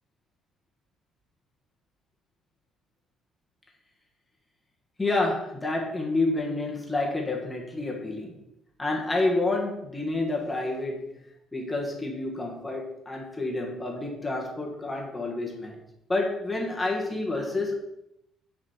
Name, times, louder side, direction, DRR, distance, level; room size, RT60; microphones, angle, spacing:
voice 1, 5.0-8.4 8.8-11.1 11.5-15.8 16.1-17.8, left 2 dB, 10° left, -1 dB, 1.6 m, -29 dB
10.0 x 5.2 x 5.7 m, 0.84 s
cardioid pair, 160°, 0 cm